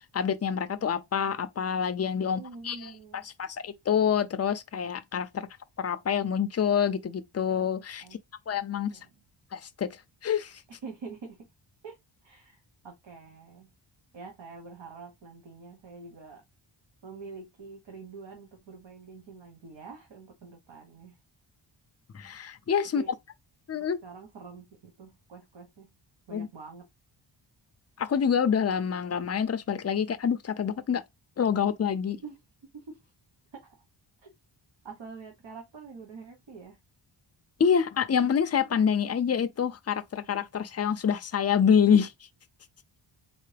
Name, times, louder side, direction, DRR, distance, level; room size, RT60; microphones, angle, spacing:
voice 1, 0.1-2.9 3.4-5.5 5.8-8.0 8.5-9.0 9.5-10.0 10.2-10.6 22.1-23.0 23.7-24.0 26.3-26.5 28.0-31.0 31.4-32.2 37.6-42.1, left 7 dB, 35° left, 0.5 m, -26 dB
voice 2, 2.2-3.3 8.0-8.2 8.9-9.1 10.7-11.5 11.8-13.7 14.1-16.4 17.0-21.2 23.0-23.1 23.8-25.9 26.3-26.9 32.2-33.1 33.5-33.8 34.2-34.3 34.8-36.8, right 4 dB, 65° right, 1.2 m, -46 dB
4.2 x 3.2 x 3.3 m
wide cardioid pair, 135°, 48 cm